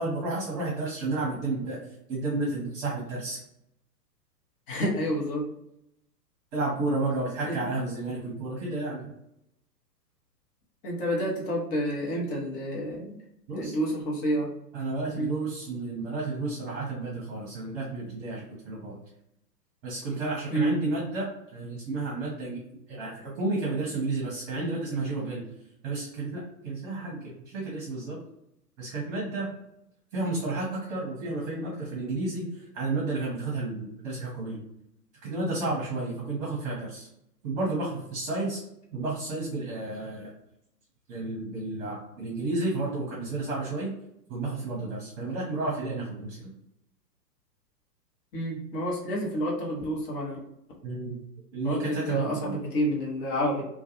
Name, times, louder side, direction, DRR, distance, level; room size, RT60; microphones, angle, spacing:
voice 1, 0.0-1.8 2.1-3.4 6.5-9.1 13.5-13.8 14.7-18.9 19.8-21.2 21.5-22.6 22.9-25.4 25.8-27.2 27.5-28.2 28.8-29.5 30.1-34.6 35.2-37.1 37.4-38.6 38.9-40.3 41.1-43.9 44.3-46.5 50.8-51.2 51.5-52.6, right 2 dB, 35° right, -4 dB, 0.9 m, -31 dB
voice 2, 4.7-5.5 7.4-7.7 10.8-13.2 13.5-14.5 15.2-15.3 20.5-20.8 48.3-50.4 51.6-53.6, equal, 35° left, -2 dB, 0.8 m, -29 dB
2.3 x 2.2 x 2.8 m, 0.81 s
hypercardioid pair, 120°, 49 cm